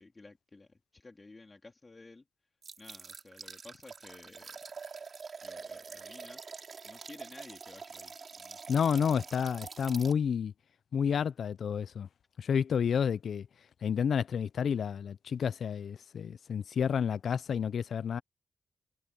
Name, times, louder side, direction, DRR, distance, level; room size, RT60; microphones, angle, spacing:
voice 1, 0.0-2.3 2.8-4.6 5.4-6.4 6.8-8.7 9.0-9.2, left 3 dB, 25° left, 3.0 m, -54 dB
sound 1, 2.6-10.1, right 5 dB, 50° right, 2.9 m, -46 dB
voice 2, 8.7-10.5 10.9-12.1 12.4-13.5 13.8-18.2, left 7 dB, 75° left, 0.4 m, -30 dB
wide cardioid pair, 110°, 0 cm